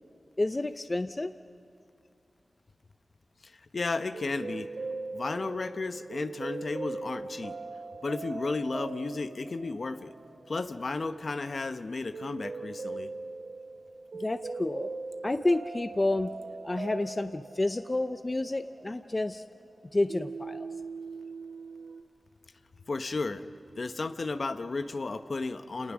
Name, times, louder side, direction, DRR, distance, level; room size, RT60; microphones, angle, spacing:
voice 1, 0.4-1.3 14.2-14.9 15.2-16.3 16.6-19.4 19.9-20.7, left 2 dB, 35° left, 10 dB, 0.5 m, -29 dB
voice 2, 3.4-4.7 5.1-7.6 8.0-10.1 10.5-13.1 22.9-23.5 23.8-25.9, left 3 dB, 65° left, 10 dB, 0.9 m, -33 dB
sound 1, 4.1-19.8 20.1-22.0, right 4 dB, 75° right, 1.3 m, -41 dB
28.0 x 19.0 x 6.2 m, 2.5 s
cardioid pair, 50°, 0 cm